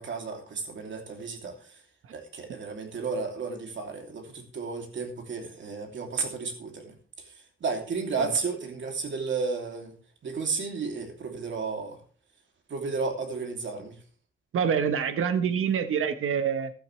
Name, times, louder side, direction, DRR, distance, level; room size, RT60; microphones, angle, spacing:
voice 1, 0.0-1.8 2.1-7.3 7.6-9.9 10.2-12.0 12.7-14.0, right 4 dB, 65° right, 3.0 m, -33 dB
voice 2, 14.5-16.7, right 7 dB, 90° right, 1.3 m, -26 dB
15.0 x 12.0 x 3.3 m
wide cardioid pair, 155°, 21 cm